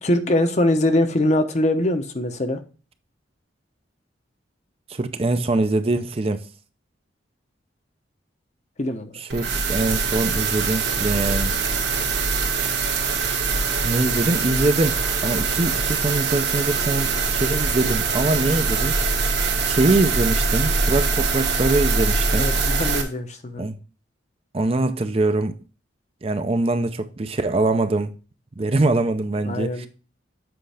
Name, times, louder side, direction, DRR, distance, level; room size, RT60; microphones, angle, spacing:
voice 1, 0.0-2.6 8.8-9.1 22.3-23.7 29.4-29.9, left 1 dB, 40° left, 0.8 m, -22 dB
voice 2, 4.9-6.4 9.1-11.6 13.8-19.0 19.6-22.5 23.6-23.8 24.5-25.5 26.2-28.1 28.6-29.9, right 2 dB, 30° right, 0.5 m, -23 dB
sound 1, 9.3-23.0, right 4 dB, 65° right, 1.5 m, -23 dB
7.7 x 5.2 x 3.4 m
head